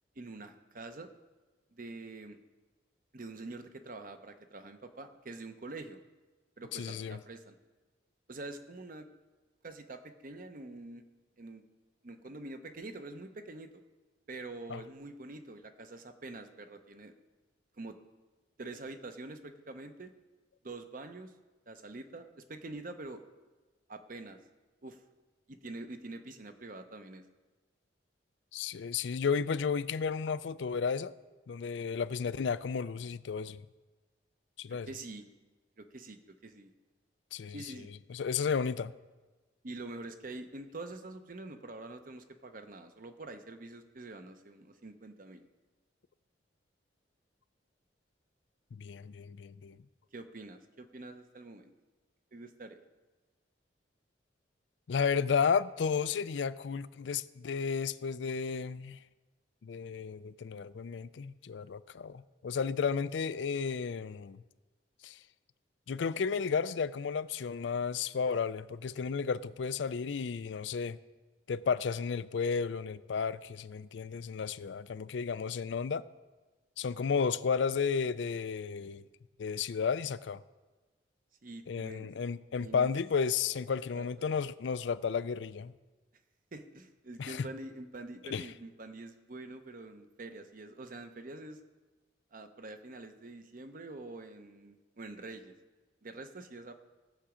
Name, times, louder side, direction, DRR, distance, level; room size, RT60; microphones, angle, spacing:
voice 1, 0.2-1.1 1.7-2.4 3.1-6.0 6.6-7.6 8.3-9.1 9.6-11.0 11.4-11.6 12.0-13.8 14.3-17.1 17.8-18.0 18.6-20.1 20.6-21.3 21.7-23.2 23.9-24.4 24.8-25.0 25.5-27.2 34.7-35.2 35.8-36.7 37.5-37.9 39.6-45.4 50.1-51.7 52.3-52.8 81.4-82.1 82.6-82.9 83.7-84.3 86.5-91.6 92.3-95.5 96.0-96.7, right 2 dB, 50° right, 0.8 m, -46 dB
voice 2, 6.7-7.2 14.7-14.8 28.5-31.1 31.5-33.6 34.6-34.9 37.3-37.6 38.1-38.9 48.7-49.8 54.9-59.0 59.6-64.4 65.0-65.2 65.9-71.0 71.5-76.0 76.8-79.0 79.4-80.4 81.7-85.7 87.2-87.5 88.3-88.5, left 6 dB, 75° left, 0.4 m, -33 dB
16.5 x 7.1 x 5.0 m
head